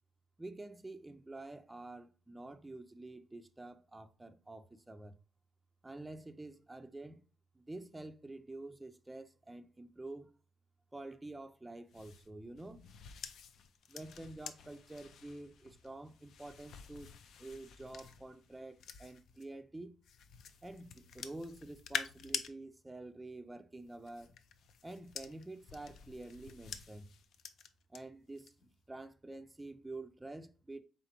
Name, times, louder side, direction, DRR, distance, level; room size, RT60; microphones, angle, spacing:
voice 1, 0.4-5.2 5.8-7.2 7.5-10.3 10.9-12.8 13.9-17.1 17.4-20.0 20.6-24.3 24.8-27.1 27.9-30.8, right 2 dB, 10° right, 0.4 m, -48 dB
sound 1, 11.9-19.5 20.0-22.5 23.7-28.0 28.4-28.7, left 7 dB, 70° left, 0.4 m, -47 dB
3.9 x 3.4 x 2.8 m
cardioid pair, 90°, 0 cm